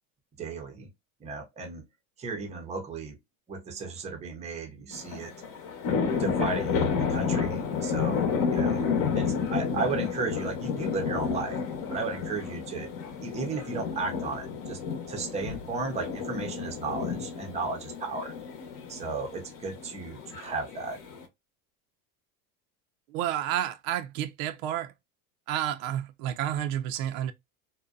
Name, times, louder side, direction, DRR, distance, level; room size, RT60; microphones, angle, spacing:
voice 1, 0.4-0.9 1.2-1.8 2.2-3.2 3.5-5.5 6.2-8.9 9.2-11.6 11.9-12.9 13.2-14.8 15.1-18.3 18.9-21.0, right 4 dB, 15° right, 0.5 m, -34 dB
sound 1, 4.9-21.2, left 6 dB, 45° left, 0.8 m, -31 dB
voice 2, 23.1-24.9 25.5-27.3, right 11 dB, 70° right, 0.5 m, -30 dB
2.6 x 2.1 x 2.3 m
supercardioid pair, 125°, 43 cm